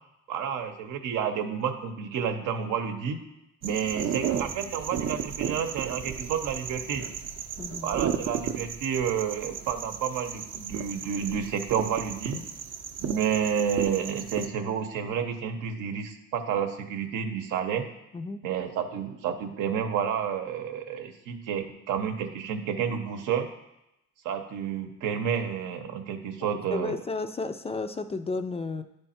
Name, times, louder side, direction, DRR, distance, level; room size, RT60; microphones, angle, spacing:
voice 1, 0.3-3.2 3.6-7.1 7.8-12.4 13.0-17.8 18.4-23.5 24.2-27.0, right 7 dB, 90° right, 6 dB, 0.8 m, -30 dB
sound 1, 3.6-14.5, right 8 dB, 60° right, 0.6 m, -34 dB
voice 2, 7.6-8.0 18.1-18.4 26.4-28.8, left 3 dB, 20° left, 9 dB, 0.3 m, -33 dB
10.0 x 3.4 x 4.3 m, 0.89 s
cardioid pair, 90°, 30 cm